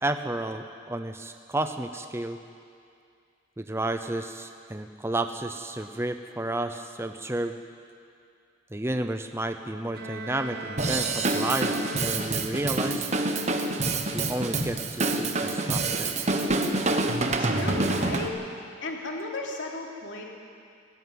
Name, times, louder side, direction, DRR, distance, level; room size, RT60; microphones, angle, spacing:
voice 1, 0.0-2.4 3.6-7.6 8.7-13.1 14.1-16.1, right 1 dB, 15° right, 7 dB, 0.7 m, -31 dB
Bowed string instrument, 9.9-12.7, right 2 dB, 50° right, 1.8 m, -39 dB
Drum kit / Drum, 10.8-18.3, right 2 dB, 35° right, 1.2 m, -27 dB
voice 2, 17.4-18.4 18.8-20.2, left 2 dB, 65° left, -1 dB, 3.2 m, -34 dB
19.0 x 17.5 x 9.4 m, 2.3 s
head